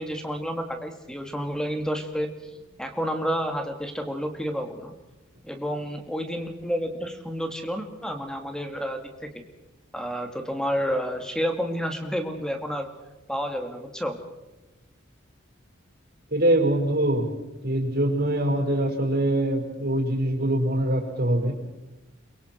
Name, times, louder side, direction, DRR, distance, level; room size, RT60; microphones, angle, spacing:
voice 1, 0.0-2.3 2.8-4.9 5.4-9.4 9.9-12.9 13.3-14.2, equal, 5° left, 5 dB, 2.4 m, -30 dB
voice 2, 16.3-17.3 17.6-21.5, right 1 dB, 50° right, 1 dB, 5.3 m, -23 dB
29.5 x 23.0 x 4.6 m, 1.1 s
head